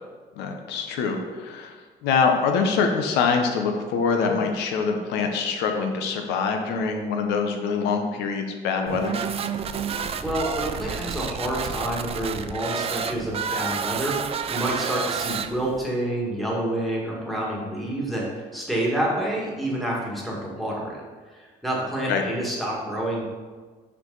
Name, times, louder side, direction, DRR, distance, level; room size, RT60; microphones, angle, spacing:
voice 1, 0.4-1.7 2.0-9.2 22.1-22.2, left 5 dB, 85° left, 4 dB, 0.9 m, -24 dB
sound 1, 8.9-15.9, right 7 dB, 35° right, 0.4 m, -30 dB
voice 2, 10.2-21.0 21.3-23.3, right 1 dB, ahead, -4 dB, 1.8 m, -28 dB
5.9 x 4.9 x 3.9 m, 1.4 s
cardioid pair, 110°, 17 cm